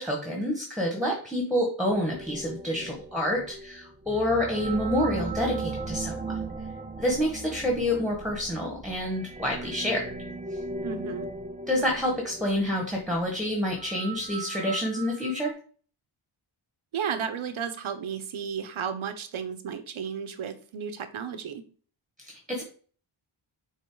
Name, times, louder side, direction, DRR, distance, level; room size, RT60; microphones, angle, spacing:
voice 1, 0.0-6.3 7.0-10.0 11.7-15.5 22.2-22.6, left 1 dB, ahead, 0 dB, 1.5 m, -28 dB
sound 1, 1.9-15.5, right 3 dB, 15° right, 0.5 m, -38 dB
voice 2, 10.8-11.3 16.9-21.6, right 7 dB, 75° right, 9 dB, 0.9 m, -33 dB
6.4 x 3.8 x 3.9 m, 0.43 s
wide cardioid pair, 100°, 49 cm